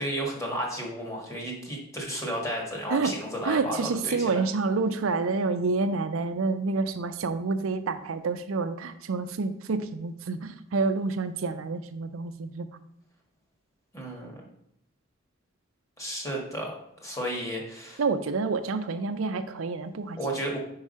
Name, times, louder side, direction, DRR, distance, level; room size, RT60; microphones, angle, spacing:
voice 1, 0.0-4.5 13.9-14.3 16.0-16.7 17.0-18.0 20.2-20.6, equal, 15° left, -1 dB, 1.5 m, -33 dB
voice 2, 3.4-12.7 18.0-20.2, right 4 dB, 85° right, 9 dB, 0.5 m, -28 dB
4.8 x 4.7 x 5.4 m, 0.75 s
head